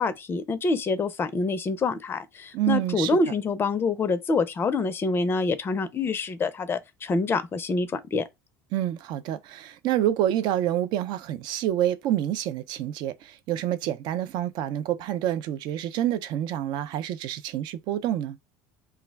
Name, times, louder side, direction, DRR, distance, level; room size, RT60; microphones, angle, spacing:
voice 1, 0.0-8.2, left 3 dB, 25° left, 0.4 m, -26 dB
voice 2, 2.5-3.2 8.7-18.4, right 12 dB, 55° right, 0.4 m, -27 dB
2.2 x 2.1 x 3.3 m
hypercardioid pair, 90°, 9 cm